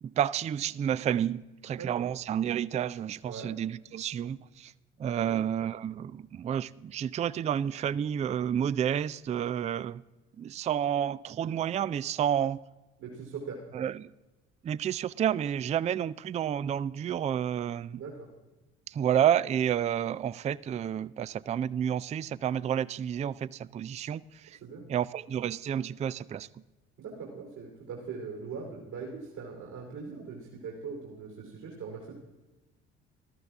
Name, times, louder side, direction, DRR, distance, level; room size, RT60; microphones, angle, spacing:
voice 1, 0.0-4.7 5.0-10.0 10.4-12.6 13.7-14.1 14.6-18.0 18.9-24.6 24.9-26.5, right 9 dB, 20° right, 0.3 m, -30 dB
voice 2, 13.0-13.6 18.0-18.3 24.6-24.9 27.0-32.1, right 5 dB, 60° right, 3.1 m, -41 dB
14.0 x 13.0 x 3.5 m
figure-of-eight pair, 50°, 35 cm